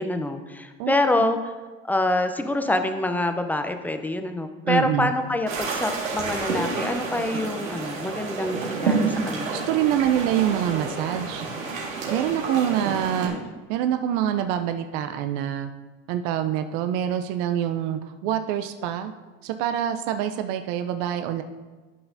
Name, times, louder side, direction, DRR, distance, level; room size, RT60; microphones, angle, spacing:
voice 1, 0.0-1.4 1.8-9.5, left 1 dB, 5° left, 7 dB, 0.6 m, -26 dB
voice 2, 4.6-5.1 9.5-11.4 12.0-13.3 13.7-15.7 16.1-19.1 19.4-21.4, right 10 dB, 55° right, 8 dB, 0.6 m, -25 dB
sound 1, 5.5-13.3, right 4 dB, 85° right, 1.8 m, -29 dB
11.5 x 5.8 x 2.7 m, 1.3 s
hypercardioid pair, 80°, 39 cm